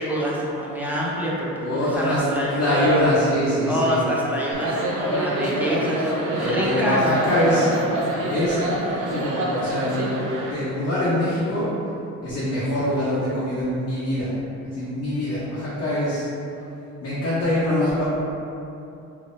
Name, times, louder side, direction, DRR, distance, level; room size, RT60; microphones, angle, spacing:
voice 1, 0.0-2.9 3.7-7.8, equal, 5° right, -6 dB, 0.6 m, -26 dB
voice 2, 1.6-2.2 2.5-4.0 6.4-7.7 8.3-8.6 9.0-10.1 10.5-11.7 12.2-14.3 14.8-16.2 17.0-18.0, left 1 dB, 55° left, -10 dB, 0.9 m, -23 dB
sound 1, 4.5-10.5, right 1 dB, 90° right, 0.6 m, -27 dB
3.5 x 2.8 x 2.6 m, 2.7 s
cardioid pair, 90°, 30 cm